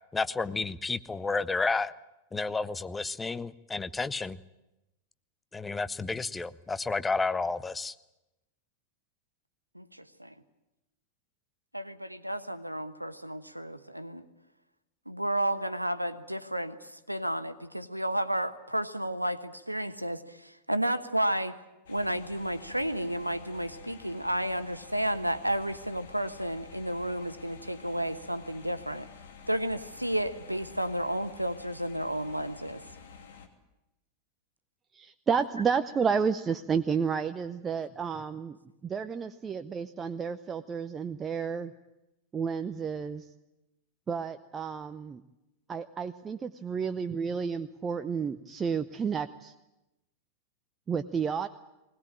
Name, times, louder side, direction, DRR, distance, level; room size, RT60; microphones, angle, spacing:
voice 1, 0.1-1.9 2.3-4.4 5.5-7.9, left 4 dB, 10° left, 15 dB, 0.8 m, -31 dB
voice 2, 9.7-10.3 11.7-14.3 15.1-21.5 21.9-29.1 29.5-32.8, right 1 dB, 90° right, 11 dB, 1.2 m, -32 dB
sound 1, 21.9-33.5, left 5 dB, 60° left, 2.8 m, -50 dB
voice 3, 34.9-38.6 38.8-41.7 42.3-43.3 44.1-45.2 45.7-49.5 50.9-51.5, right 6 dB, 20° right, 9 dB, 0.7 m, -31 dB
20.5 x 20.0 x 8.8 m, 0.96 s
figure-of-eight pair, 90°, 0 cm